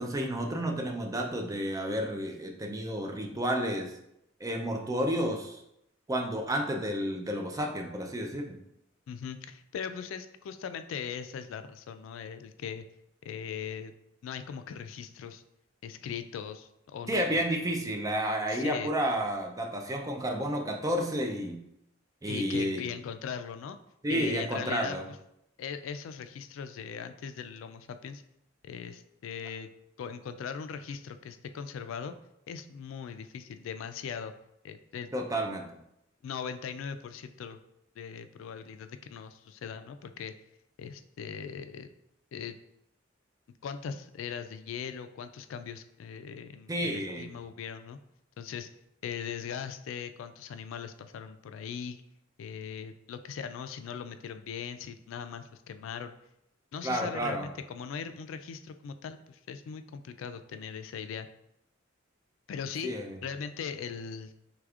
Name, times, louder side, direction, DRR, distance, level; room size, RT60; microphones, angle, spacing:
voice 1, 0.0-3.9 4.4-5.6 6.1-8.6 17.1-21.6 22.2-22.9 24.0-25.1 35.1-35.7 46.7-47.3 56.8-57.5 62.8-63.2, equal, 15° right, 3 dB, 0.4 m, -31 dB
voice 2, 9.1-12.9 13.2-13.9 14.2-15.4 15.8-17.4 18.5-18.9 22.3-23.8 24.1-25.0 25.6-28.2 28.6-29.7 30.0-32.1 32.5-34.3 34.6-35.1 36.2-37.6 38.0-40.3 40.8-41.9 42.3-42.6 43.6-48.0 48.4-48.7 49.0-52.0 52.4-56.1 56.7-61.3 62.5-62.9 63.2-64.3, left 7 dB, 75° left, 10 dB, 0.3 m, -39 dB
4.9 x 3.4 x 2.4 m, 0.80 s
head